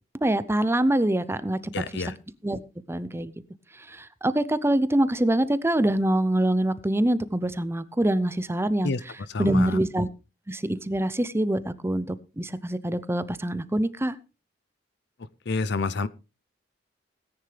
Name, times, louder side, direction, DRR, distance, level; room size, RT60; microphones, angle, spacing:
voice 1, 0.2-2.0 2.4-2.6 2.9-3.3 3.7-8.9 9.4-10.1 10.5-14.2, right 1 dB, 15° right, 15 dB, 0.6 m, -25 dB
voice 2, 1.7-2.1 8.8-9.0 9.3-9.8 15.5-16.1, left 4 dB, 65° left, 17 dB, 0.7 m, -28 dB
18.0 x 9.8 x 3.3 m, 0.29 s
head